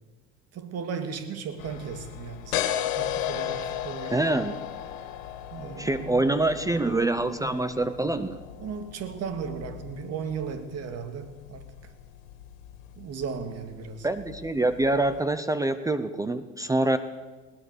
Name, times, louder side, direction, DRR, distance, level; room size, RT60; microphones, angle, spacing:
voice 1, 0.5-2.6 2.9-4.4 5.5-6.5 8.6-11.7 13.0-14.1, right 6 dB, 40° right, 2.4 m, -36 dB
sound 1, 1.6-15.2, left 11 dB, 85° left, 2.5 m, -36 dB
voice 2, 4.1-4.6 5.8-8.4 14.0-17.0, right 2 dB, 10° right, 0.7 m, -25 dB
20.5 x 19.0 x 6.8 m
supercardioid pair, 135°, 38 cm